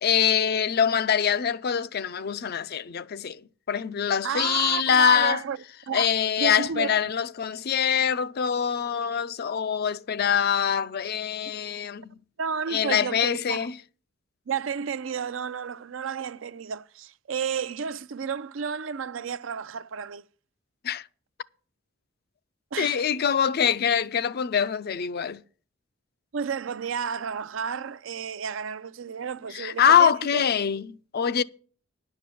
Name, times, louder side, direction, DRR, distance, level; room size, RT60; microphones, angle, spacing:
voice 1, 0.0-3.4 3.7-5.4 5.9-12.1 12.7-13.8 20.8-21.1 22.8-25.4 29.5-31.4, left 8 dB, 50° left, 0.4 m, -24 dB
voice 2, 4.2-5.6 5.9-6.1 6.4-6.9 12.4-13.7 14.5-20.2 22.7-23.0 26.3-30.4, right 6 dB, 70° right, 0.5 m, -32 dB
10.5 x 5.9 x 8.4 m
head